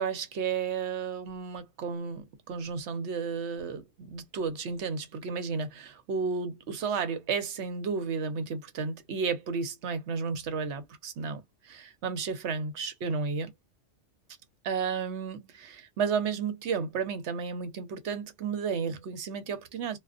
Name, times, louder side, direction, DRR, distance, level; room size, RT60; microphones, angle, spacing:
voice 1, 0.0-13.5 14.6-20.0, right 5 dB, 70° right, 0.9 m, -32 dB
2.4 x 2.3 x 2.3 m
omnidirectional pair, 1.2 m